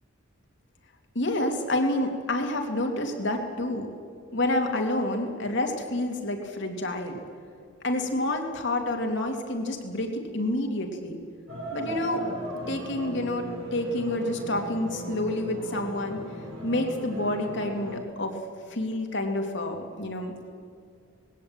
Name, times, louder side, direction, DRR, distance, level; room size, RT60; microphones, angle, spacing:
voice 1, 1.1-3.9 4.3-7.2 7.8-11.2 11.7-12.2 12.7-16.2 16.6-18.4 18.7-20.3, left 1 dB, 55° left, 3 dB, 2.9 m, -28 dB
sound 1, 11.5-18.0, right 1 dB, 80° right, 6.6 m, -37 dB
20.5 x 16.5 x 9.0 m, 2.3 s
head